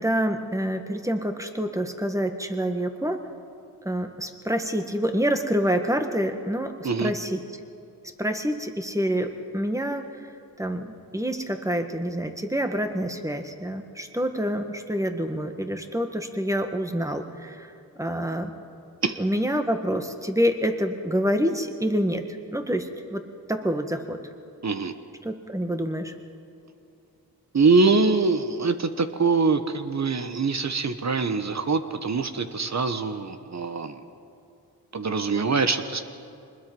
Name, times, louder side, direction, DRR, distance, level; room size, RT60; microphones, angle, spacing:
voice 1, 0.0-3.2 3.8-7.4 8.2-10.1 10.6-17.7 18.0-18.5 19.2-22.2 22.5-23.2 23.5-24.2 25.2-26.1, equal, 10° right, 6 dB, 1.7 m, -27 dB
voice 2, 24.6-24.9 27.5-34.0 34.9-36.0, right 4 dB, 45° right, 9 dB, 1.2 m, -23 dB
25.0 x 20.5 x 5.4 m, 2.5 s
cardioid pair, 60°, 38 cm